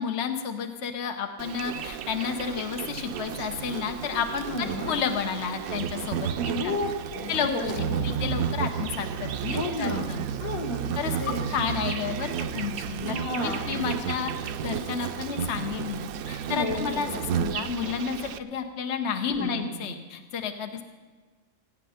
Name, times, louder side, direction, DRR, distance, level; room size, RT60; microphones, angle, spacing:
voice 1, 0.0-6.7 7.3-10.2 11.0-11.2 11.5-13.2 13.4-14.3 14.6-20.8, left 6 dB, 55° left, 5 dB, 1.1 m, -31 dB
Insect, 1.4-18.4, right 8 dB, 85° right, 1.1 m, -32 dB
voice 2, 4.4-4.9 6.4-8.1 9.5-10.1 10.4-10.9 11.2-11.4 13.1-13.8 16.5-17.2 19.3-19.7, left 2 dB, 85° left, 0 dB, 2.5 m, -32 dB
17.5 x 9.7 x 5.7 m, 1.4 s
omnidirectional pair, 1.5 m